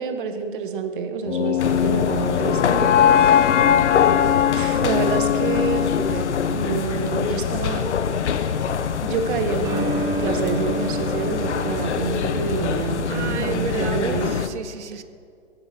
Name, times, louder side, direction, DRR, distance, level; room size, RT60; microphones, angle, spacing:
voice 1, 0.0-3.6 4.5-7.9 9.0-9.9 10.2-14.3, right 5 dB, 45° right, 7 dB, 1.6 m, -28 dB
sound 1, 1.2-7.4, left 9 dB, 90° left, 0.7 m, -20 dB
sound 2, 1.6-14.5, left 7 dB, 70° left, 1.2 m, -25 dB
sound 3, 9.6-14.5, right 2 dB, 10° right, 1.1 m, -30 dB
voice 2, 12.7-15.0, right 7 dB, 70° right, 12 dB, 1.2 m, -32 dB
23.0 x 8.8 x 6.1 m, 2.2 s
hypercardioid pair, 150°, 36 cm